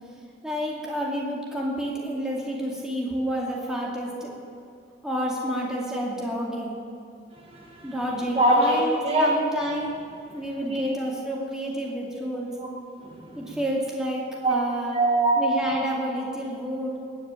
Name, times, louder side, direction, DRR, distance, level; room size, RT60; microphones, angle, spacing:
voice 1, 0.4-4.3 5.0-6.8 7.8-9.9 10.3-12.5 13.4-15.0 15.4-17.0, equal, 5° right, -4 dB, 2.5 m, -29 dB
voice 2, 7.3-8.0 8.3-9.4 10.3-10.8 12.6-12.7 13.0-13.6 14.4-14.6 14.9-15.4, right 1 dB, 30° right, -2 dB, 1.6 m, -24 dB
20.0 x 7.1 x 9.0 m, 2.4 s
head